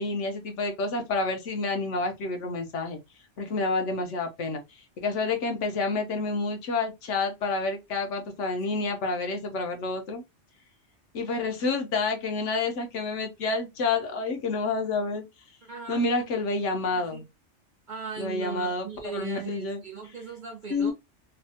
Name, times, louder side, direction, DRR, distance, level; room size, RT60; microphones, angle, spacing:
voice 1, 0.0-3.0 3.4-4.6 5.0-10.2 11.1-15.2 15.9-17.2 18.2-18.9 19.1-19.8 20.7-20.9, left 3 dB, 90° left, 1.1 m, -29 dB
voice 2, 15.6-16.0 16.9-17.2 17.9-20.9, right 5 dB, 50° right, 0.7 m, -38 dB
3.2 x 2.1 x 2.7 m
omnidirectional pair, 1.2 m